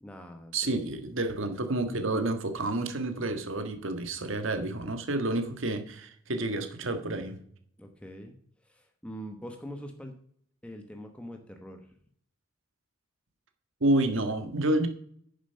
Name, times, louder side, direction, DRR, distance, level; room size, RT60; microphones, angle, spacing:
voice 1, 0.0-0.5 7.8-8.4 8.6-10.1 10.6-11.8, equal, 5° left, 4 dB, 1.1 m, -43 dB
voice 2, 0.5-7.4 13.8-14.9, right 2 dB, 80° right, 7 dB, 1.5 m, -29 dB
9.7 x 7.1 x 5.7 m, 0.62 s
head